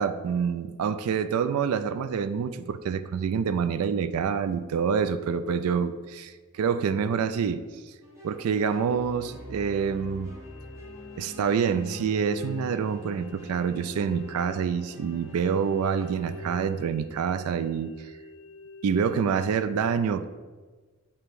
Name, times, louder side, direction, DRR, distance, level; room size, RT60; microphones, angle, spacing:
voice 1, 0.0-7.6 8.2-10.3 11.2-18.1 18.8-20.3, right 6 dB, 80° right, 12 dB, 0.3 m, -27 dB
sound 1, 8.0-16.6, equal, 15° right, 1.2 m, -43 dB
sound 2, 10.4-19.5, left 3 dB, 70° left, 0.3 m, -47 dB
8.7 x 2.9 x 4.6 m, 1.4 s
head